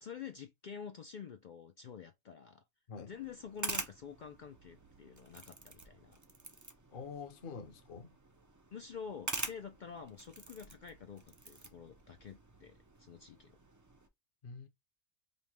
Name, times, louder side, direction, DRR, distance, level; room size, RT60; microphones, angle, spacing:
voice 1, 0.0-2.6 3.0-6.2 8.7-13.6, left 7 dB, 70° left, 0.4 m, -48 dB
sound 1, 3.1-14.1, right 2 dB, 25° right, 0.4 m, -46 dB
voice 2, 6.9-8.2 14.4-14.7, left 5 dB, 50° left, 0.8 m, -46 dB
5.3 x 2.1 x 2.9 m
omnidirectional pair, 1.3 m